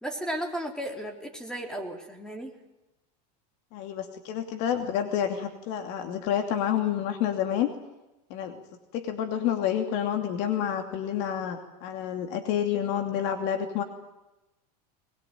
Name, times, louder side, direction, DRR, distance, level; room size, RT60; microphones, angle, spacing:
voice 1, 0.0-2.6, right 1 dB, 5° left, 3 dB, 3.9 m, -34 dB
voice 2, 3.7-7.7 8.3-8.6 8.9-13.8, left 9 dB, 55° left, 5 dB, 2.7 m, -29 dB
21.5 x 21.5 x 9.2 m, 0.98 s
supercardioid pair, 140°, 21 cm